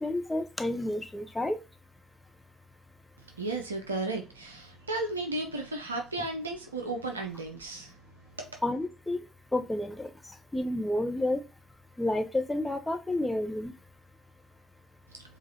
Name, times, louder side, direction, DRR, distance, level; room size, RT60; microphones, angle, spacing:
voice 1, 0.0-1.6 8.6-9.2 9.5-10.1 10.5-11.4 12.0-13.7, left 1 dB, 15° left, 0.7 m, -30 dB
voice 2, 3.4-8.0 8.4-8.5, right 2 dB, 85° right, 0.5 m, -34 dB
4.8 x 2.5 x 2.8 m
figure-of-eight pair, 50°, 0 cm